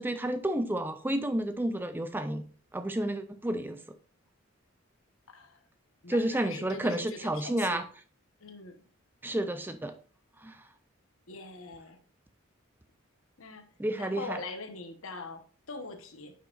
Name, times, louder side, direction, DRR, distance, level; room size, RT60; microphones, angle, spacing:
voice 1, 0.0-2.4 2.7-3.8 6.1-7.9 9.2-9.9 10.4-10.6 13.8-14.4, right 1 dB, 10° right, 9 dB, 0.4 m, -31 dB
voice 2, 5.3-5.6 6.0-7.8 8.4-8.8 11.3-12.0 13.4-13.6 14.0-16.3, left 3 dB, 75° left, 7 dB, 1.1 m, -42 dB
9.5 x 5.7 x 2.4 m, 0.43 s
head